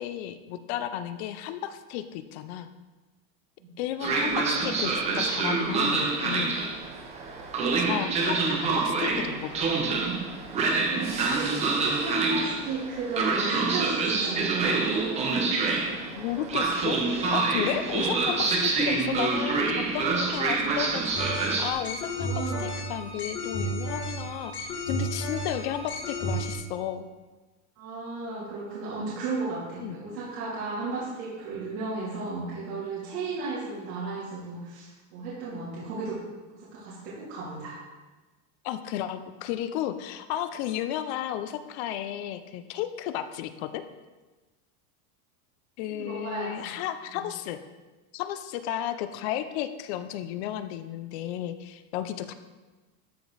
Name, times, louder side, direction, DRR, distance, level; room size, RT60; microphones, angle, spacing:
voice 1, 0.0-2.7 3.8-6.5 7.8-9.7 16.2-17.0 17.3-21.0 21.3-27.1 29.8-30.0 38.6-43.8 45.8-47.6 48.1-52.3, left 11 dB, 50° left, 10 dB, 0.5 m, -33 dB
Train, 4.0-21.7, right 4 dB, 15° right, 0.5 m, -27 dB
voice 2, 10.8-14.7 17.8-18.5 22.2-22.6 27.8-36.2 36.5-37.7 46.0-46.7 47.1-47.2, right 3 dB, 85° right, -9 dB, 3.1 m, -34 dB
sound 1, 21.2-26.5, equal, 25° left, 1.6 m, -33 dB
13.0 x 4.9 x 4.0 m, 1.2 s
cardioid pair, 175°, 45 cm